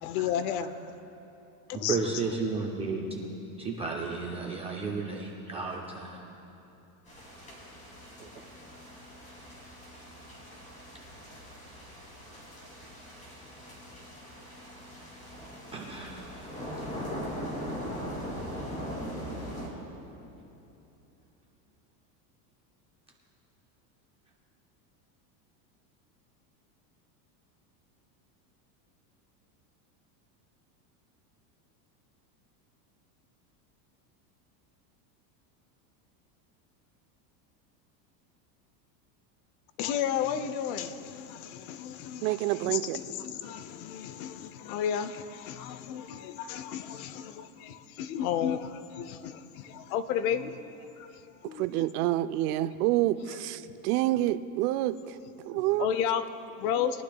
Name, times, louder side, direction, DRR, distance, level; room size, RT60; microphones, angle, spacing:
voice 1, 0.0-0.7 1.7-2.0 39.8-51.9 53.0-53.1 53.6-53.8 55.5-57.0, left 9 dB, 60° left, 0.8 m, -33 dB
voice 2, 1.7-3.3 3.6-6.2 8.2-8.3 15.7-16.5, right 4 dB, 15° right, 0.3 m, -33 dB
sound 1, 7.1-19.7, equal, 15° left, 2.9 m, -41 dB
voice 3, 42.2-43.0 51.6-55.2 55.4-55.9, right 15 dB, 65° right, 0.6 m, -28 dB
22.0 x 11.5 x 2.3 m
supercardioid pair, 150°, 49 cm